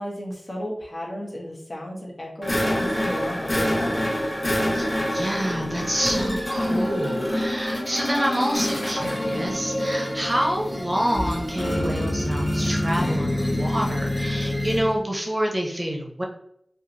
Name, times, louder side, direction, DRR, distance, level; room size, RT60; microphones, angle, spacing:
voice 1, 0.0-4.1, equal, 50° left, -2 dB, 1.2 m, -33 dB
sound 1, 2.4-15.0, left 1 dB, 25° left, 1.5 m, -26 dB
voice 2, 4.7-16.2, equal, 30° right, 0 dB, 0.7 m, -27 dB
2.8 x 2.4 x 3.9 m, 0.74 s
cardioid pair, 45°, 0 cm